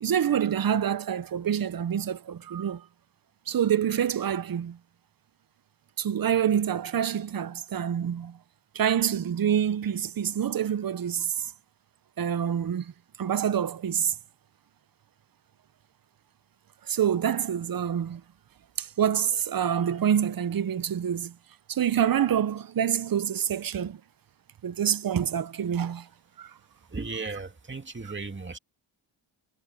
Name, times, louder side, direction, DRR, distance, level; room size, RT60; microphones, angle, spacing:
voice 1, 0.0-2.8 3.5-4.8 6.0-8.4 8.7-11.3 12.2-12.9 13.2-14.1 16.9-18.2 18.8-21.3 21.7-24.0 24.6-26.1 26.4-26.5 28.0-28.1, right 9 dB, 45° right, 0.9 m, -26 dB
voice 2, 26.9-28.6, right 3 dB, 25° right, 2.4 m, -36 dB
cardioid pair, 80°, 48 cm